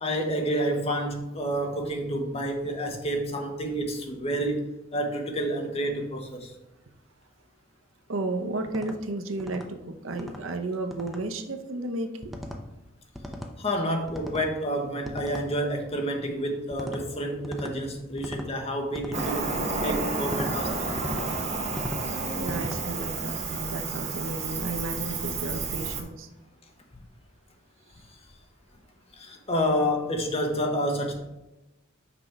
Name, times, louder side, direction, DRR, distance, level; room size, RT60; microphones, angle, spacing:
voice 1, 0.0-6.5 13.6-19.5 19.8-20.9 29.2-31.2, equal, 30° left, 3 dB, 1.1 m, -29 dB
voice 2, 8.1-12.4 22.4-26.3, right 2 dB, 75° right, 7 dB, 0.8 m, -33 dB
sound 1, 8.7-9.0 9.4-9.7 10.1-10.4 10.9-11.2 12.2-12.6 13.2-13.5 14.1-14.5 15.1-15.5 16.7-17.0 17.4-17.8 18.2-18.5 18.9-19.3 20.2-20.6 21.0-21.3 21.7-22.0 22.5-22.8, equal, ahead, 0.7 m, -37 dB
Cricket, 19.1-26.0, right 3 dB, 35° right, 0.9 m, -31 dB
6.0 x 5.2 x 4.5 m, 0.96 s
head